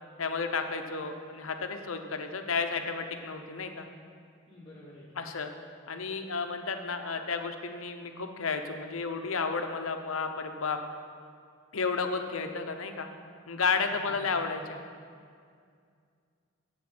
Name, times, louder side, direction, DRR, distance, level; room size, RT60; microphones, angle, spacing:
voice 1, 0.2-3.9 5.2-5.5 5.9-10.8 11.7-13.1 13.5-14.8, left 4 dB, 80° left, 6 dB, 0.8 m, -32 dB
voice 2, 4.5-5.3 13.8-14.6, left 1 dB, 25° left, -8 dB, 1.4 m, -51 dB
7.9 x 7.4 x 7.8 m, 2.2 s
head